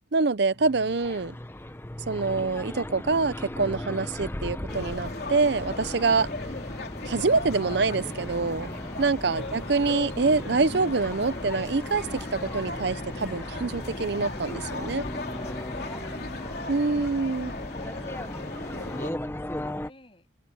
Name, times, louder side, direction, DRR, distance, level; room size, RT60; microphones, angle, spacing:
voice 1, 0.1-1.3 2.1-6.3 7.1-8.7 9.0-15.0 16.7-17.5, right 4 dB, 60° right, 0.7 m, -25 dB
sound 1, 0.5-19.9, left 1 dB, 10° left, 0.8 m, -37 dB
sound 2, 4.7-19.1, left 2 dB, 55° left, 3.6 m, -38 dB
voice 2, 14.9-16.7 17.1-20.3, left 1 dB, 30° left, 7.4 m, -53 dB
head